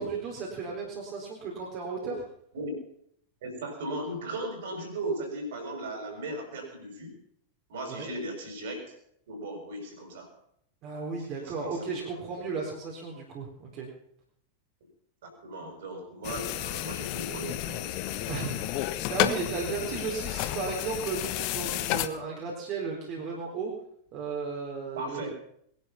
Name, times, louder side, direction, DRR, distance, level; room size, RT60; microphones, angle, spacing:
voice 1, 0.0-2.2 7.9-8.1 10.8-13.9 18.3-23.7 24.1-25.2, right 4 dB, 35° right, -2 dB, 4.1 m, -35 dB
voice 2, 3.4-7.2 7.7-9.0 9.3-10.3 11.2-11.9 12.3-12.4 15.2-18.5 19.0-19.1 24.9-25.3, right 1 dB, 55° right, 4 dB, 6.2 m, -37 dB
sound 1, 16.2-22.1, left 14 dB, 45° left, 1.2 m, -32 dB
21.5 x 11.5 x 5.9 m, 0.69 s
figure-of-eight pair, 90°, 0 cm